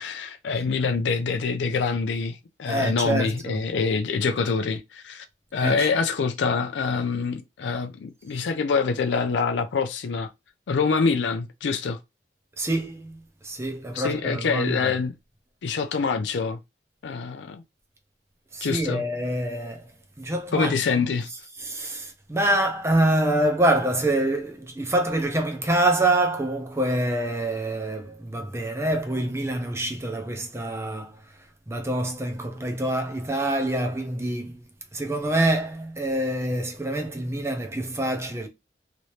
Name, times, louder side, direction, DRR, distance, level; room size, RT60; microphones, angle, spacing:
voice 1, 0.0-5.2 5.5-10.3 10.7-12.0 13.9-15.1 15.6-16.6 17.0-17.6 18.6-19.0 20.5-21.3, left 5 dB, 80° left, 0.4 m, -25 dB
voice 2, 2.7-3.6 5.6-5.9 12.6-14.9 18.5-19.9 20.2-20.8 21.6-31.4 31.7-34.6 34.9-38.5, right 1 dB, 15° right, 0.6 m, -26 dB
3.0 x 2.7 x 3.1 m
head